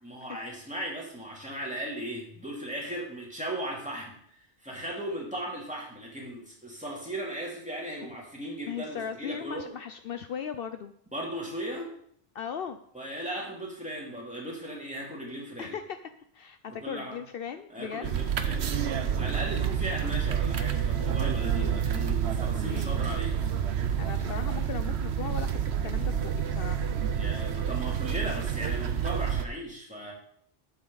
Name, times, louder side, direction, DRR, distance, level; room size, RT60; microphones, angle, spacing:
voice 1, 0.0-4.2 4.6-9.7 11.1-11.9 12.9-15.8 16.7-17.2 17.7-23.7 27.1-30.1, right 1 dB, 5° right, -3 dB, 3.0 m, -37 dB
voice 2, 8.7-10.9 12.3-12.8 15.6-16.0 16.3-18.1 22.6-23.1 24.0-26.9, left 7 dB, 65° left, 9 dB, 0.8 m, -38 dB
sound 1, 18.0-29.4, right 8 dB, 85° right, 1.1 m, -29 dB
12.0 x 8.9 x 4.0 m, 0.64 s
omnidirectional pair, 1.1 m